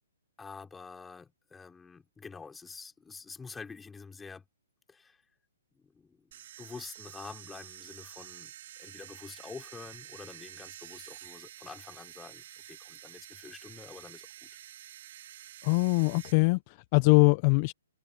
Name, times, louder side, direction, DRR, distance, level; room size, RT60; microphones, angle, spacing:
voice 1, 0.4-4.5 4.9-5.2 5.7-8.5 8.8-14.5, left 5 dB, 10° left, 5.6 m, -47 dB
sound 1, 6.3-16.3, right 12 dB, 50° right, 4.7 m, -49 dB
voice 2, 15.6-17.7, left 31 dB, 35° left, 1.1 m, -23 dB
hypercardioid pair, 135°, 0 cm